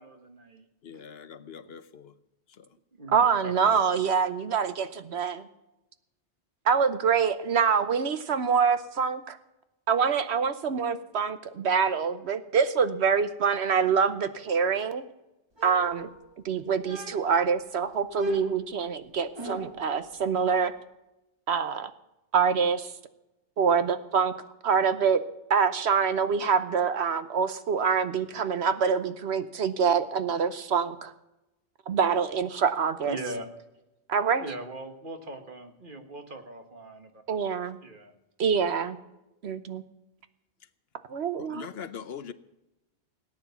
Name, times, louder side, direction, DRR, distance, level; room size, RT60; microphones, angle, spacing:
voice 1, 0.0-0.6 3.0-3.1 3.4-3.8 33.1-33.5 34.4-37.4 37.8-38.1, right 2 dB, 45° right, 1.8 m, -40 dB
voice 2, 0.8-2.1 2.6-2.7 41.4-42.3, left 7 dB, 65° left, 0.9 m, -41 dB
voice 3, 3.1-5.5 6.6-9.4 9.9-15.0 15.6-16.1 16.4-20.7 21.5-21.9 22.3-22.9 23.6-24.3 24.6-25.2 25.5-31.1 31.9-33.2 34.1-34.4 37.3-37.8 38.4-39.0 39.4-39.8 41.1-41.7, right 6 dB, 70° right, 1.1 m, -25 dB
sound 1, 15.6-16.4 16.8-17.5 18.1-19.9, left 2 dB, 20° right, 1.9 m, -41 dB
18.0 x 9.6 x 7.1 m
omnidirectional pair, 1.2 m